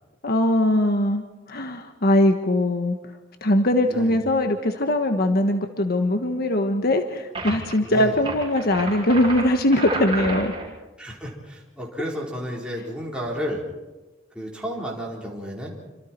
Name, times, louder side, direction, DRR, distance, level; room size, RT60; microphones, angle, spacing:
voice 1, 0.2-3.0 3.4-10.5, left 1 dB, 55° left, 6 dB, 1.4 m, -21 dB
voice 2, 3.9-4.2 7.8-8.2 11.0-13.6 14.3-15.8, equal, 5° right, -4 dB, 4.5 m, -32 dB
Sampler Tree Falling, 7.3-7.7 8.2-10.7, right 2 dB, 30° right, 6.8 m, -31 dB
28.0 x 26.0 x 4.6 m, 1.1 s
head